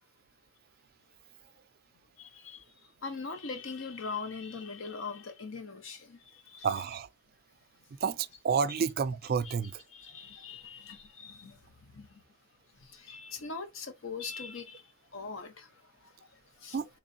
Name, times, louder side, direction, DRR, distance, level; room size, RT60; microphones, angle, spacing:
voice 1, 2.2-6.8 9.4-9.5 9.9-12.2 12.8-16.8, left 4 dB, 85° left, 0.8 m, -42 dB
voice 2, 6.6-7.1 8.0-8.2 8.4-9.8 16.7-17.0, right 6 dB, 50° right, 0.3 m, -29 dB
3.6 x 3.1 x 2.6 m
head